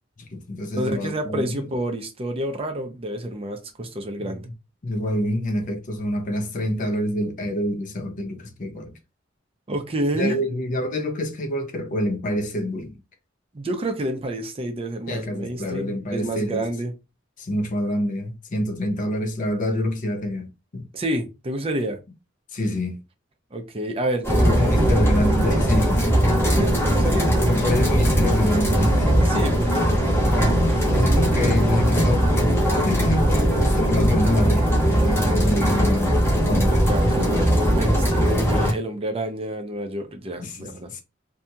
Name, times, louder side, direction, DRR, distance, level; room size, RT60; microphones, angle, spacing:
voice 1, 0.2-1.7 4.2-4.4 4.8-9.0 10.1-13.0 15.1-16.6 17.4-20.9 22.5-23.0 24.4-26.0 27.5-29.1 30.8-32.3 32.7-36.2 36.5-37.3 40.4-41.0, left 1 dB, 45° left, 0.6 m, -27 dB
voice 2, 0.7-4.5 9.7-10.4 13.5-16.9 20.9-22.0 23.5-25.0 26.4-27.3 29.3-30.4 30.7-30.8 36.9-41.0, right 1 dB, 30° right, 0.5 m, -29 dB
sound 1, 24.2-38.7, equal, 10° left, 1.0 m, -19 dB
2.8 x 2.7 x 2.3 m
head